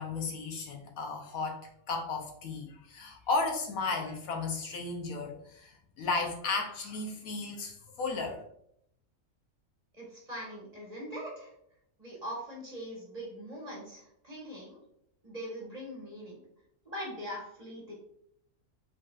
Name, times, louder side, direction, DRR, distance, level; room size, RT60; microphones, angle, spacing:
voice 1, 0.0-5.7 6.0-8.4, left 3 dB, 70° left, 2 dB, 1.1 m, -34 dB
voice 2, 9.9-11.5 12.0-14.8 15.2-16.4 16.8-17.9, equal, 25° right, -4 dB, 1.5 m, -42 dB
5.0 x 3.9 x 2.4 m, 0.73 s
omnidirectional pair, 1.6 m